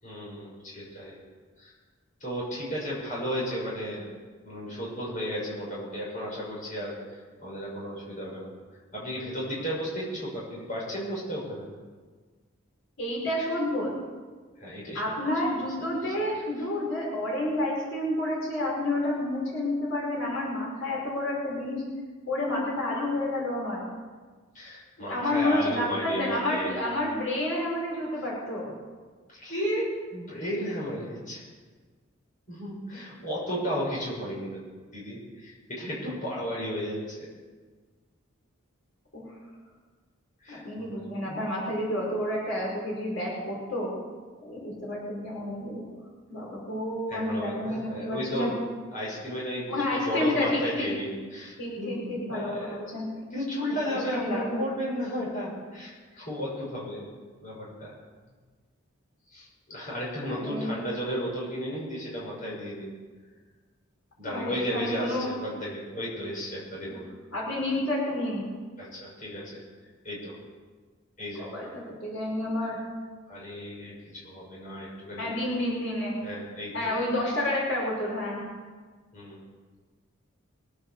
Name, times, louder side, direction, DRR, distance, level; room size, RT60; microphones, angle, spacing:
voice 1, 0.0-1.2 1.6-1.7 2.2-4.1 4.4-8.5 8.9-11.7 14.6-15.1 15.6-15.7 16.0-16.3 24.5-26.8 29.3-31.4 32.5-34.6 34.9-37.3 40.4-41.0 41.3-41.5 47.1-48.6 48.9-52.8 53.1-57.0 57.4-57.9 59.3-62.9 64.2-67.1 68.8-69.6 70.0-70.4 71.2-71.5 73.3-75.3 76.2-76.9 79.1-79.4, equal, 40° left, -5 dB, 6.3 m, -34 dB
voice 2, 13.0-13.9 14.9-21.8 22.3-23.8 25.1-28.7 39.1-39.2 40.5-43.9 44.4-45.9 46.3-48.5 49.7-50.9 51.6-53.1 53.8-54.6 60.3-60.7 64.3-65.3 66.9-67.0 67.3-68.4 71.4-72.8 75.2-76.2 76.7-78.4, left 1 dB, 75° left, -4 dB, 5.2 m, -30 dB
23.0 x 8.6 x 6.9 m, 1.5 s
head